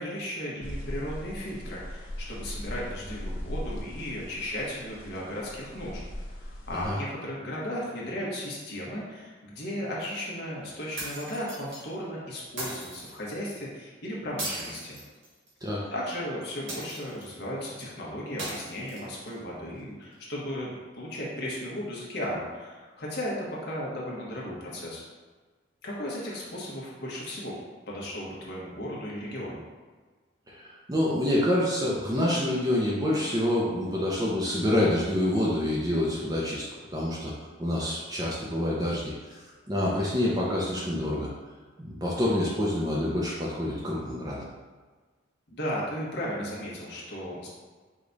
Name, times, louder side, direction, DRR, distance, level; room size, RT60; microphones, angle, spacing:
voice 1, 0.0-6.0 6.3-15.0 15.9-25.0 25.8-27.5 27.9-29.6 45.5-47.5, equal, 55° left, -5 dB, 1.1 m, -35 dB
sound 1, 0.6-6.9, equal, 75° left, 0.7 m, -39 dB
sound 2, 11.0-11.8 12.6-13.1 14.4-15.6 16.7-17.3 18.4-19.3, right 1 dB, 70° right, 1.4 m, -38 dB
voice 2, 30.5-37.3 37.6-39.1 39.7-41.3 41.8-44.4, left 1 dB, 20° right, -5 dB, 0.5 m, -27 dB
4.9 x 2.3 x 3.9 m, 1.4 s
head